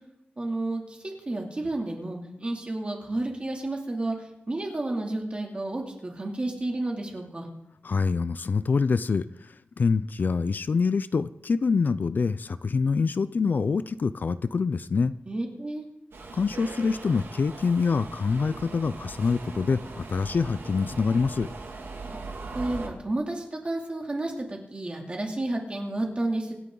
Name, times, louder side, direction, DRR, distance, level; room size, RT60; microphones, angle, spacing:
voice 1, 0.4-0.8 1.3-4.1 4.5-7.5 15.3-15.8 22.5-26.5, right 2 dB, 30° right, 1 dB, 2.7 m, -31 dB
voice 2, 7.8-9.3 9.8-15.1 16.3-21.5, left 5 dB, 55° left, 15 dB, 0.4 m, -25 dB
Subway metro underground, 16.1-22.9, right 3 dB, 90° right, 2.3 m, -40 dB
26.0 x 9.6 x 3.9 m, 0.86 s
wide cardioid pair, 135°, 4 cm